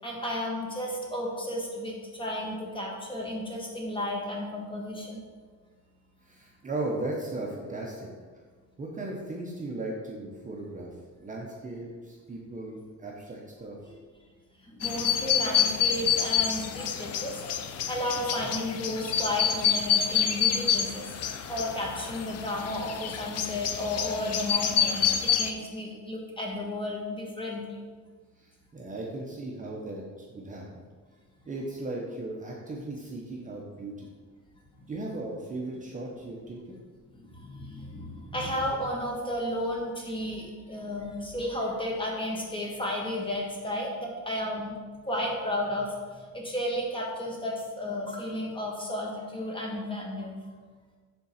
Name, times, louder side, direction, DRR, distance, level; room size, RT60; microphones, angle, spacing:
voice 1, 0.0-5.2 13.8-13.9 14.6-21.1 21.5-27.6 37.2-44.8 45.0-50.4, left 1 dB, 15° left, -2 dB, 1.3 m, -33 dB
voice 2, 6.2-8.1 8.8-13.8 28.4-30.6 31.5-34.1 34.9-36.6, right 2 dB, 25° right, -2 dB, 0.8 m, -37 dB
sound 1, 14.8-25.5, left 8 dB, 50° left, 0.5 m, -28 dB
6.9 x 3.7 x 5.6 m, 1.5 s
cardioid pair, 145°, 32 cm